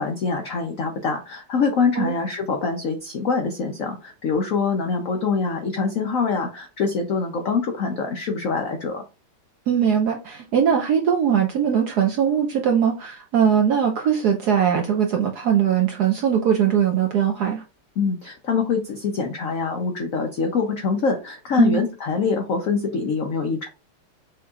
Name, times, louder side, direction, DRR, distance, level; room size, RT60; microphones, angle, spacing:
voice 1, 0.0-9.1 18.0-23.7, left 5 dB, 85° left, 0.7 m, -24 dB
voice 2, 9.7-17.6 21.6-21.8, right 8 dB, 70° right, 0.9 m, -20 dB
6.2 x 2.9 x 2.4 m
omnidirectional pair, 2.4 m